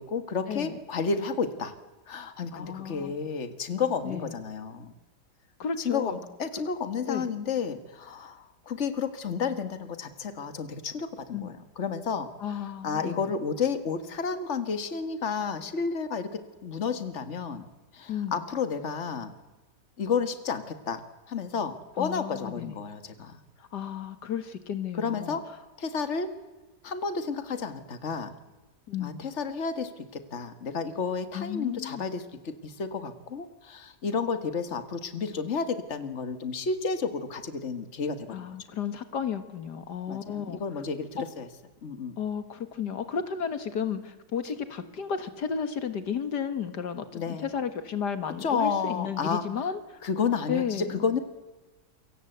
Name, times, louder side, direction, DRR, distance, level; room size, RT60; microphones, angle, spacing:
voice 1, 0.0-1.7 2.1-4.9 5.8-12.3 12.8-17.7 17.9-19.3 20.0-23.4 24.9-25.4 25.8-26.3 26.8-28.3 29.0-38.6 40.1-41.1 41.4-41.5 41.8-42.2 47.1-47.5 48.4-49.4 50.0-51.2, left 5 dB, 45° left, 10 dB, 2.0 m, -31 dB
voice 2, 2.5-3.1 4.0-4.3 5.6-6.2 7.1-7.3 11.3-11.5 12.4-13.3 18.1-18.4 22.0-22.8 23.6-25.4 28.9-29.3 31.3-32.1 38.3-40.6 42.2-50.0 50.5-51.0, left 7 dB, 80° left, 10 dB, 2.2 m, -33 dB
28.0 x 24.5 x 8.1 m, 1.2 s
omnidirectional pair, 1.8 m